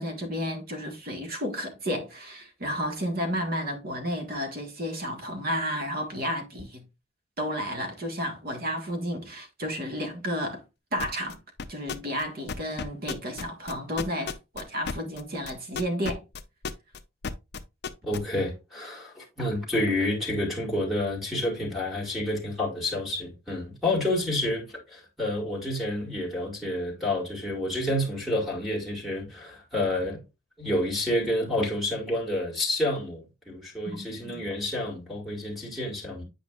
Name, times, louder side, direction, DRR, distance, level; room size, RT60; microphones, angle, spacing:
voice 1, 0.0-6.9 7.4-10.6 10.9-11.4 11.7-16.2 33.9-34.4, equal, 45° right, 1.7 m, -32 dB
sound 1, 11.0-11.3 11.6-12.2 12.5-18.2, left 5 dB, 55° left, 0.6 m, -33 dB
voice 2, 18.0-30.2 30.6-36.2, left 1 dB, ahead, 2.2 m, -29 dB
8.7 x 5.0 x 2.4 m
head